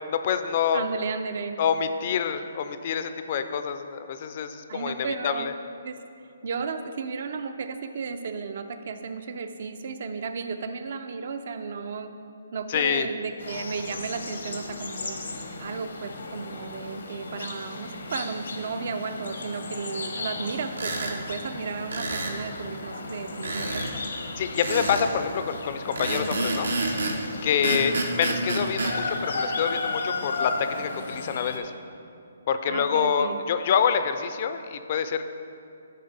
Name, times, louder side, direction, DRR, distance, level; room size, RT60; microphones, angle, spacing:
voice 1, 0.1-0.8 1.6-5.5 12.7-13.1 24.4-26.7 27.4-31.7 32.5-35.2, left 7 dB, 40° left, 9 dB, 0.3 m, -26 dB
voice 2, 0.7-1.6 4.7-5.5 5.8-6.0 6.4-12.1 12.5-15.2 15.6-24.0 27.6-28.0 32.7-33.4, right 5 dB, 55° right, 9 dB, 0.4 m, -34 dB
sound 1, 13.4-31.6, left 3 dB, 80° left, 0.7 m, -35 dB
sound 2, 20.7-21.2 21.9-22.4 23.4-23.9 24.6-25.1 25.9-27.2 27.6-28.9, right 2 dB, 85° right, 0.8 m, -28 dB
9.3 x 3.5 x 4.0 m, 2.6 s
hypercardioid pair, 155°, 0 cm